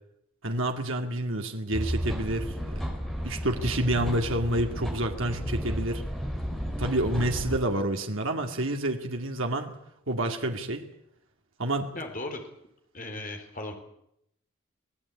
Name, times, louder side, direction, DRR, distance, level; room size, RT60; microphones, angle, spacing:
voice 1, 0.4-2.8 3.2-6.0 6.8-9.7 10.1-10.9 11.6-11.9, right 1 dB, 65° right, 3 dB, 2.2 m, -28 dB
sound 1, 1.7-7.6, equal, ahead, 3.8 m, -33 dB
voice 2, 11.9-12.4 12.9-13.7, left 2 dB, 40° left, 3 dB, 4.1 m, -36 dB
24.5 x 17.0 x 8.6 m, 0.77 s
head